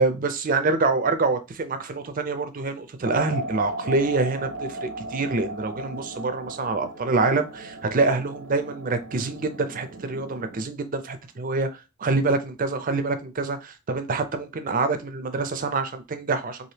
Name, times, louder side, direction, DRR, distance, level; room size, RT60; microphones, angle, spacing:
voice 1, 0.0-16.6, right 3 dB, 40° right, 0.4 m, -26 dB
sound 1, 3.0-10.7, right 1 dB, 85° right, 0.6 m, -36 dB
3.2 x 2.5 x 2.8 m
head